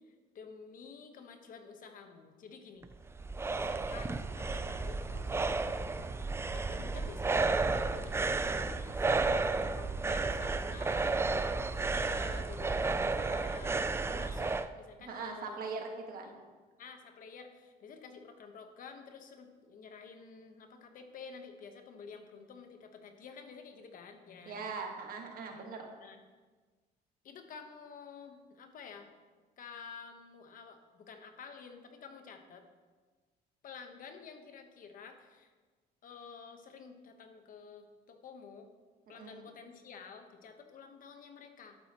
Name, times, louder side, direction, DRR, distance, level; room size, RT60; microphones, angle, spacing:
voice 1, 0.0-2.9 3.6-6.1 6.5-11.5 11.8-12.9 13.2-15.7 16.2-16.3 16.8-24.6 25.5-25.7 26.0-26.2 27.2-29.1 29.6-32.6 33.6-35.5 36.0-38.7 39.1-41.8, left 5 dB, 55° left, 6 dB, 1.1 m, -51 dB
sound 1, 2.8-14.7, right 3 dB, 15° right, 0.4 m, -32 dB
voice 2, 15.0-16.4 24.5-25.9 39.1-39.4, right 4 dB, 60° right, 2 dB, 1.6 m, -41 dB
11.5 x 8.9 x 3.0 m, 1.4 s
cardioid pair, 110°, 17 cm